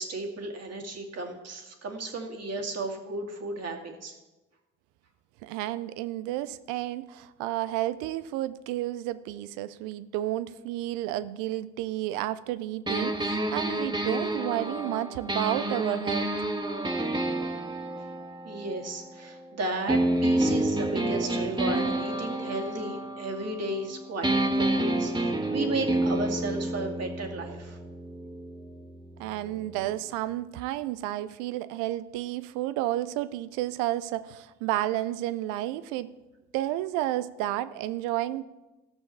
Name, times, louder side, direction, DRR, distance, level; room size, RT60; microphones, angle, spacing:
voice 1, 0.0-4.2 18.4-27.8, right 2 dB, 55° right, 2 dB, 2.3 m, -34 dB
voice 2, 5.4-16.3 29.2-36.1 36.5-38.4, right 14 dB, 85° right, 15 dB, 0.6 m, -31 dB
sound 1, 12.9-19.4 19.9-23.9 24.2-30.0, right 1 dB, 15° right, 1.5 m, -29 dB
14.5 x 6.4 x 7.0 m, 1.1 s
hypercardioid pair, 55°, 31 cm